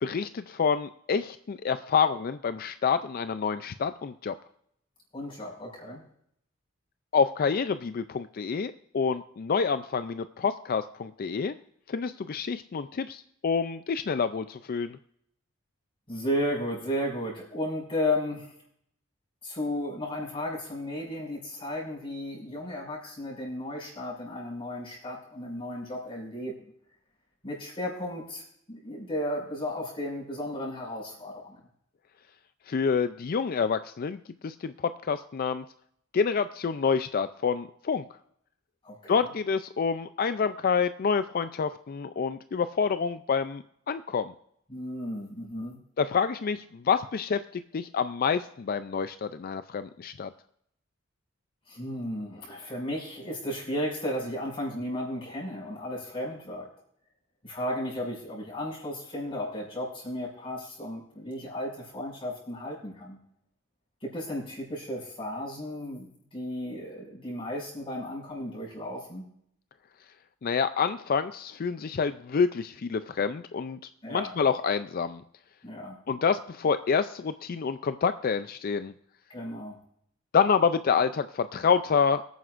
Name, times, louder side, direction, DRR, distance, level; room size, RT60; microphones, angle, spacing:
voice 1, 0.0-4.3 7.1-11.5 11.9-15.0 32.7-35.6 36.1-38.0 39.1-44.3 46.0-50.3 70.4-73.8 74.1-75.2 76.1-78.9 80.3-82.2, left 6 dB, 45° left, 11 dB, 0.4 m, -27 dB
voice 2, 5.1-6.0 16.1-18.5 19.4-26.6 27.4-28.4 28.7-31.6 38.8-39.3 44.7-45.8 51.7-56.7 57.4-63.2 64.0-69.2 74.0-74.3 75.6-76.0 79.3-79.8, left 1 dB, 25° left, -4 dB, 6.0 m, -34 dB
23.5 x 9.3 x 2.5 m, 0.70 s
head